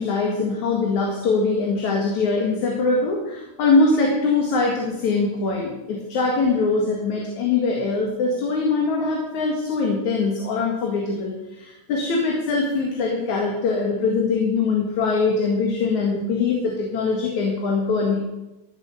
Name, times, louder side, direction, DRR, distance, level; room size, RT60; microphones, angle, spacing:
voice 1, 0.0-18.2, left 4 dB, 70° left, -1 dB, 3.3 m, -22 dB
14.5 x 8.0 x 6.9 m, 0.96 s
omnidirectional pair, 3.6 m